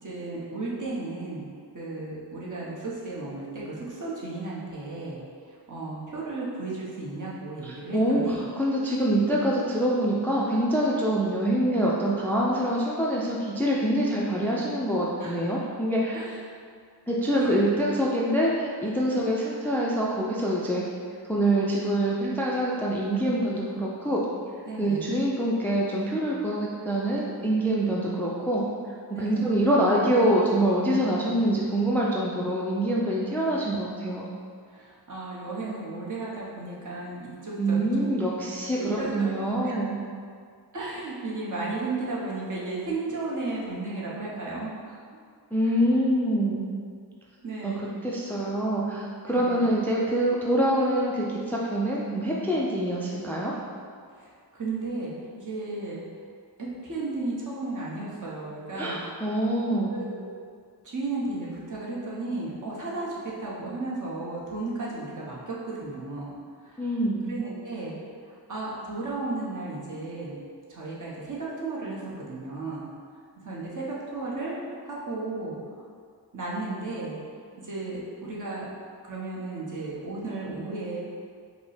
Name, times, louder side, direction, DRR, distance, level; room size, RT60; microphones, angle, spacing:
voice 1, 0.0-1.4 1.7-5.2 5.5-8.4 15.2-15.4 16.1-16.4 17.4-17.5 24.7-25.1 29.1-29.5 34.7-38.1 38.7-39.8 40.7-45.0 47.4-47.9 49.3-49.7 54.1-56.0 56.6-59.0 59.9-60.2 60.8-66.3 66.6-66.9 67.2-68.0 68.3-70.4 70.7-72.9 73.4-75.5 76.3-77.2 77.6-78.6 79.0-81.0, right 2 dB, 50° right, -6 dB, 1.0 m, -34 dB
voice 2, 7.6-16.2 17.1-20.8 21.3-24.2 24.8-28.6 29.1-34.3 37.6-40.0 45.5-46.6 47.6-53.5 58.8-60.0 66.8-67.3, right 1 dB, 5° left, -4 dB, 0.3 m, -25 dB
5.1 x 2.1 x 4.8 m, 2.1 s
wide cardioid pair, 150°, 41 cm